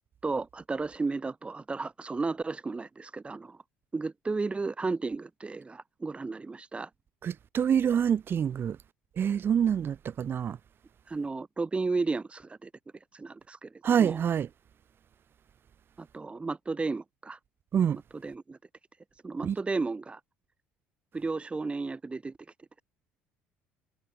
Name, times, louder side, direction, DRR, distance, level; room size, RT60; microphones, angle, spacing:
voice 1, 0.2-3.6 3.9-6.9 11.1-12.7 13.1-14.2 16.0-17.4 18.1-18.6 19.2-20.2 21.1-22.3, right 3 dB, 20° right, 2.2 m, -33 dB
voice 2, 7.2-8.8 9.2-10.6 13.8-14.5 17.7-18.0 19.4-19.6, right 8 dB, 45° right, 2.4 m, -26 dB
supercardioid pair, 75°, 5 cm